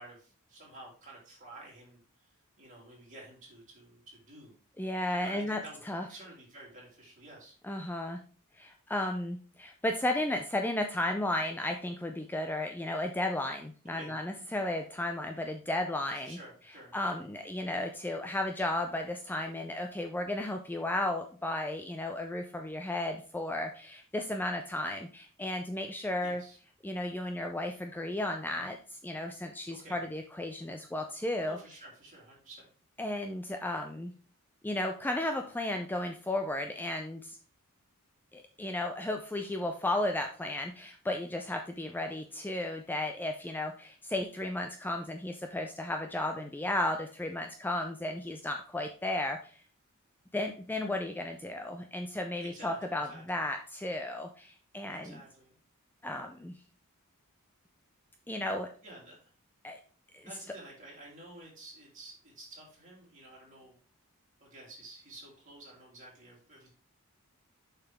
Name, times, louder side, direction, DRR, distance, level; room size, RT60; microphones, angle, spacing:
voice 1, 0.0-2.0 2.6-4.6 5.2-5.8 6.1-7.5 13.9-14.2 16.2-16.9 26.2-26.6 29.7-30.0 31.5-32.7 46.2-46.5 52.4-53.4 54.9-55.6 58.8-59.3 60.2-63.7 64.4-66.7, right 2 dB, 35° right, -4 dB, 3.5 m, -51 dB
voice 2, 4.8-5.6 5.9-6.1 7.6-8.2 8.6-16.4 16.9-26.4 26.8-31.6 33.0-34.1 34.6-37.4 38.3-49.6 50.3-55.2 56.0-56.6 58.3-58.7 59.6-59.8 60.1-60.3, left 1 dB, 10° left, 4 dB, 0.4 m, -34 dB
6.9 x 5.8 x 3.5 m, 0.40 s
head